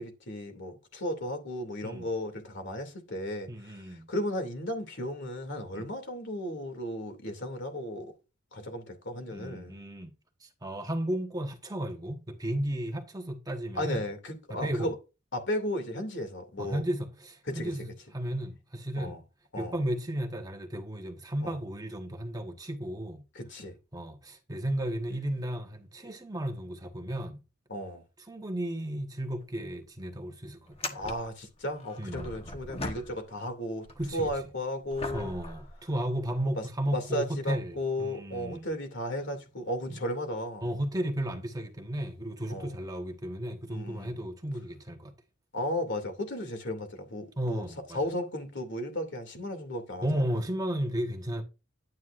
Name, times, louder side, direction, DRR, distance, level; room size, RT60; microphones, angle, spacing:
voice 1, 0.0-8.1 8.5-9.7 13.7-15.0 15.3-16.8 17.5-17.7 19.0-19.2 19.5-19.7 21.4-21.6 23.3-23.7 27.7-28.0 30.9-33.9 34.1-35.4 36.5-36.7 36.9-40.6 42.5-42.7 43.7-44.2 45.5-47.6 47.9-50.2, left 1 dB, 60° left, 2.6 m, -35 dB
voice 2, 3.5-4.1 5.7-5.9 9.3-10.1 10.4-14.0 14.6-14.9 16.6-19.2 19.6-23.2 23.9-27.4 28.3-31.0 32.0-32.3 34.0-34.3 35.1-38.7 39.9-40.0 40.6-45.1 47.4-48.0 50.0-51.4, right 1 dB, 20° right, 1.2 m, -34 dB
sound 1, 29.3-29.4 29.7-29.8 30.6-33.5 33.8-36.5 37.2-37.3 41.4-41.6 42.9-43.0, left 2 dB, 30° left, 1.2 m, -41 dB
11.0 x 9.4 x 2.5 m
head